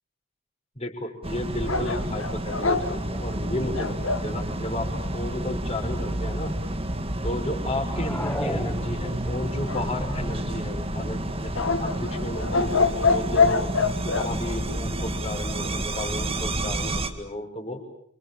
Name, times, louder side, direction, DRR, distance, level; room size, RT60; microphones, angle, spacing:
voice 1, 0.8-6.6 7.2-13.7 14.0-17.8, left 1 dB, 30° left, 3 dB, 6.0 m, -33 dB
sound 1, 1.2-17.1, right 1 dB, 30° right, 2.0 m, -30 dB
sound 2, 1.7-4.3 9.7-10.5 11.6-14.3, left 4 dB, 80° left, 2.1 m, -25 dB
sound 3, 7.8-9.5, left 1 dB, 10° left, 1.5 m, -34 dB
29.5 x 26.0 x 7.1 m, 0.68 s
head